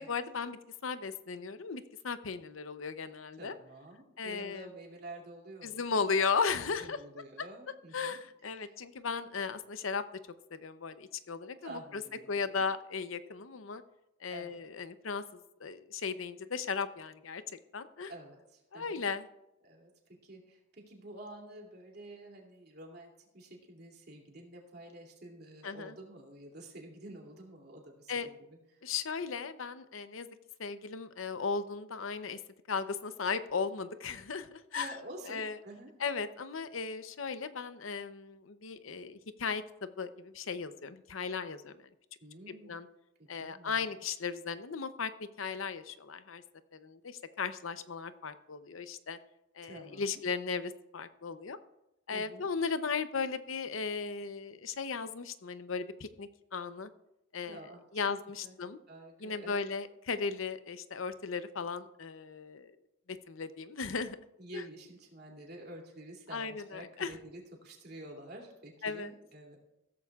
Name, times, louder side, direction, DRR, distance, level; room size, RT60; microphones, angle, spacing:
voice 1, 0.0-3.5 4.2-4.7 5.6-7.0 7.9-10.0 10.5-12.0 12.3-13.8 14.2-17.4 17.7-18.1 18.7-19.2 25.6-26.0 28.1-28.3 28.8-30.3 30.6-32.4 32.7-35.0 35.3-35.6 36.0-41.9 42.6-42.9 43.3-45.1 45.4-46.4 46.7-49.2 49.6-51.6 52.1-56.9 57.3-57.7 57.9-58.8 59.2-62.7 63.3-64.2 64.5-64.7 66.3-67.2 68.8-69.1, left 5 dB, 85° left, 11 dB, 0.7 m, -36 dB
voice 2, 3.4-5.9 6.8-8.2 8.6-8.8 11.6-12.7 14.3-14.6 18.1-19.0 19.6-28.3 28.7-28.9 34.7-35.9 42.2-42.8 43.2-43.8 49.6-50.2 52.1-52.5 57.5-58.0 58.4-58.6 58.9-59.6 64.4-69.6, right 1 dB, 55° right, 0 dB, 2.8 m, -49 dB
15.5 x 14.0 x 2.4 m, 0.86 s
head